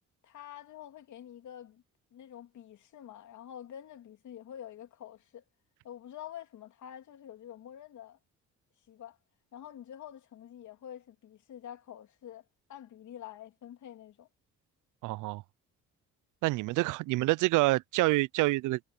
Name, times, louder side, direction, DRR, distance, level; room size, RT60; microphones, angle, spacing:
voice 1, 0.2-1.8 2.1-5.4 5.8-8.2 8.9-9.2 9.5-14.3, left 10 dB, 70° left, 3.2 m, -47 dB
voice 2, 15.0-15.4 16.4-18.8, right 20 dB, 90° right, 0.5 m, -27 dB
cardioid pair, 90°, 30 cm